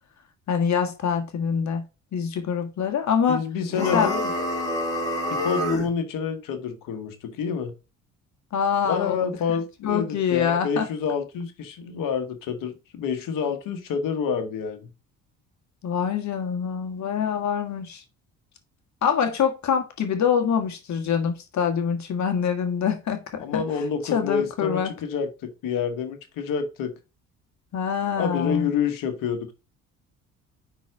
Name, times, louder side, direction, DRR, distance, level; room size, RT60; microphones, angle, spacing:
voice 1, 0.5-1.8 2.1-3.4 3.8-4.1 8.5-10.9 15.8-18.0 19.0-23.6 24.1-24.9 27.7-28.7, left 7 dB, 55° left, 1.5 m, -25 dB
voice 2, 3.3-4.3 5.3-7.7 8.8-14.9 23.4-26.9 28.2-29.5, left 6 dB, 70° left, 1.3 m, -28 dB
sound 1, 3.7-5.9, equal, 10° left, 4.1 m, -27 dB
5.6 x 4.0 x 4.7 m
supercardioid pair, 70°, 34 cm